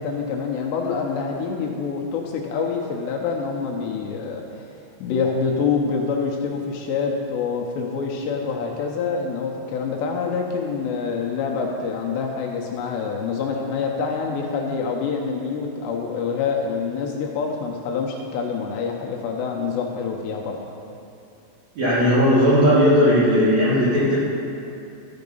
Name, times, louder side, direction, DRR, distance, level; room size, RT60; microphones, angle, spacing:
voice 1, 0.0-4.6 5.0-20.6, left 5 dB, 80° left, 0 dB, 2.8 m, -26 dB
voice 2, 21.8-24.2, equal, 55° right, -9 dB, 2.2 m, -17 dB
13.5 x 5.9 x 5.4 m, 2.8 s
omnidirectional pair, 5.2 m